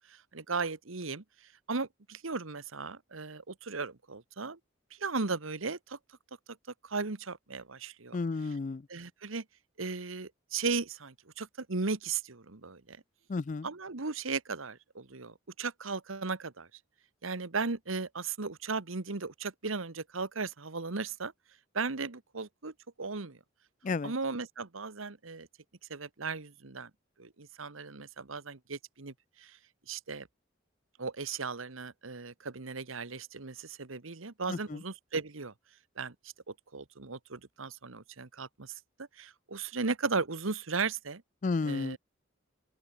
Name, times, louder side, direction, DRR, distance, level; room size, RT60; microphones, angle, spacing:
voice 1, 0.1-1.2 1.7-4.6 4.9-6.0 6.8-8.2 8.9-9.4 9.8-13.0 13.6-16.7 17.2-21.3 21.7-23.4 24.0-25.5 25.9-26.9 27.2-29.6 29.9-30.3 31.0-35.5 36.0-36.1 36.5-38.7 39.2-41.2 41.6-42.0, right 4 dB, 90° right, 1.4 m, -36 dB
voice 2, 8.1-8.9 13.3-13.7 23.8-24.1 34.5-34.8 41.4-42.0, left 4 dB, 40° left, 0.4 m, -32 dB
open air
head